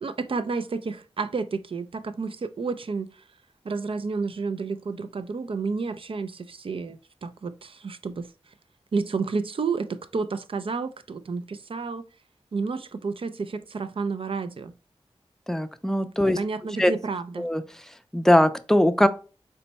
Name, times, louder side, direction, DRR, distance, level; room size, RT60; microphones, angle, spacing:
voice 1, 0.0-3.2 3.6-8.3 8.9-12.0 12.5-14.7 16.4-17.5, right 4 dB, 60° right, 0.4 m, -30 dB
voice 2, 15.5-16.4 16.8-16.9 17.4-17.6 18.1-19.1, left 1 dB, 5° left, 0.5 m, -20 dB
4.1 x 2.2 x 4.0 m
cardioid pair, 40°, 11 cm